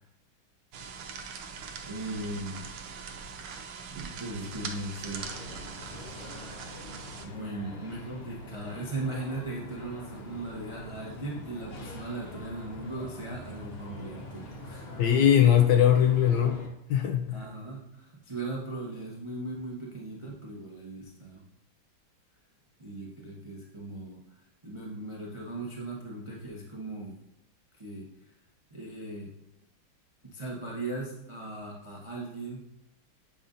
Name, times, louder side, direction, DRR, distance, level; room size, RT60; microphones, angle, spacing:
sound 1, 0.7-7.3, right 5 dB, 70° right, 1.4 m, -41 dB
voice 1, 1.9-2.7 4.0-5.3 5.7-6.5 7.2-15.0 17.3-21.4 22.8-24.2 24.6-27.2 27.8-28.1 28.7-29.3 30.2-32.6, right 2 dB, 40° right, -3 dB, 0.4 m, -38 dB
sound 2, 5.1-16.7, left 1 dB, 40° left, 1.0 m, -44 dB
voice 2, 15.0-16.6 16.9-17.4, left 9 dB, 75° left, 4 dB, 1.0 m, -21 dB
8.6 x 5.4 x 2.5 m, 0.81 s
omnidirectional pair, 2.3 m